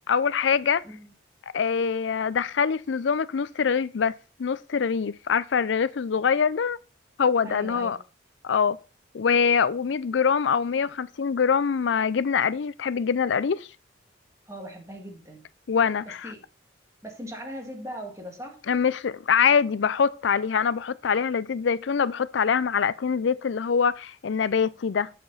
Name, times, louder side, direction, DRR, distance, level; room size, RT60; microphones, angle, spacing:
voice 1, 0.1-0.8 1.5-6.8 7.2-8.0 8.4-8.8 9.1-13.7 15.7-16.3 18.7-25.1, left 6 dB, 75° left, 0.4 m, -24 dB
voice 2, 7.4-8.0 14.5-15.4 16.1-16.4 17.0-18.6, equal, 15° right, 2.0 m, -39 dB
8.7 x 6.8 x 4.0 m
head